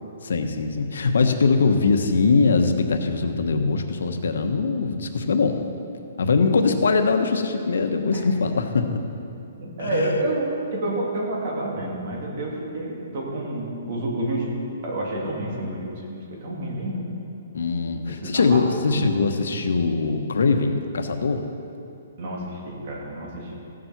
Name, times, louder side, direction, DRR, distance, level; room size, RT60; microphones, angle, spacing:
voice 1, 0.2-5.6 6.2-9.0 9.8-10.1 17.5-21.4, left 4 dB, 90° left, 6 dB, 1.2 m, -22 dB
voice 2, 9.6-14.5 14.8-15.8 16.1-17.1 18.1-19.1 22.2-23.6, right 1 dB, 40° right, -3 dB, 2.5 m, -29 dB
15.5 x 7.7 x 5.9 m, 2.7 s
hypercardioid pair, 175°, 0 cm